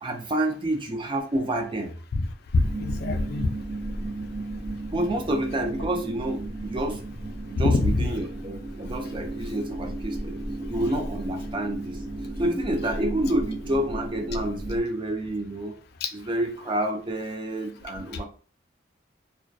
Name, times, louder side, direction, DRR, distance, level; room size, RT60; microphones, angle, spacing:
voice 1, 0.0-1.9 4.9-7.0 7.4-10.4 10.7-12.0 12.4-15.8 16.1-18.2, right 1 dB, 25° right, 4 dB, 0.4 m, -28 dB
voice 2, 2.5-3.5 7.5-8.0 16.0-16.1, left 3 dB, 55° left, 7 dB, 0.4 m, -23 dB
sound 1, 2.6-14.8, right 1 dB, 75° right, 0.6 m, -34 dB
2.2 x 2.1 x 2.5 m, 0.39 s
head